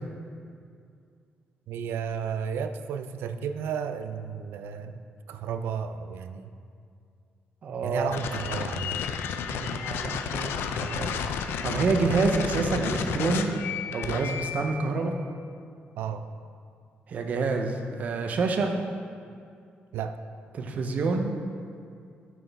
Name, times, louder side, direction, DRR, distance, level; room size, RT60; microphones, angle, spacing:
voice 1, 1.7-5.0 5.3-6.5 7.8-9.0 16.0-16.2 19.9-20.2, right 7 dB, 90° right, 9 dB, 0.4 m, -33 dB
voice 2, 7.6-8.1 9.5-13.6 13.9-15.1 17.1-18.7 20.5-21.3, right 3 dB, 40° right, 4 dB, 0.6 m, -28 dB
sound 1, 8.1-14.7, left 7 dB, 85° left, 0.4 m, -32 dB
9.0 x 6.1 x 3.5 m, 2.4 s
cardioid pair, 170°, 4 cm